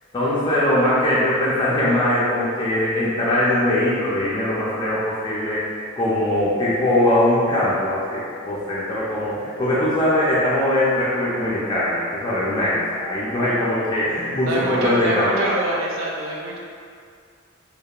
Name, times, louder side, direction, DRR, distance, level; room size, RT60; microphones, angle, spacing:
voice 1, 0.1-5.6 6.0-15.5, left 1 dB, 25° left, -9 dB, 0.4 m, -21 dB
voice 2, 14.4-16.6, right 2 dB, 70° right, -2 dB, 0.4 m, -25 dB
2.8 x 2.2 x 2.3 m, 2.2 s
head